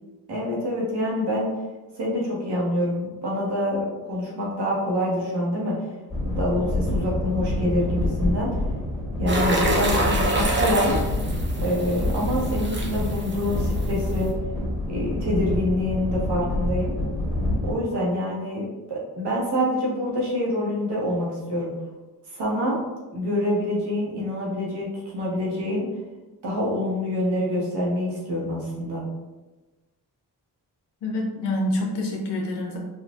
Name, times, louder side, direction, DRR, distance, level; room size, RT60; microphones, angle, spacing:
voice 1, 0.3-1.5 2.0-5.8 6.3-8.5 9.2-10.9 11.6-14.3 14.9-16.9 17.6-21.7 22.3-22.8 23.1-25.8 26.4-29.0, left 1 dB, 75° right, -4 dB, 1.3 m, -26 dB
sound 1, 6.1-17.7, left 1 dB, ahead, 1.5 m, -27 dB
sound 2, 9.3-14.3, right 1 dB, 30° right, 0.7 m, -27 dB
voice 2, 31.0-32.8, left 1 dB, 85° left, -1 dB, 0.8 m, -27 dB
4.1 x 2.4 x 2.4 m, 1.2 s
cardioid pair, 65°, 40 cm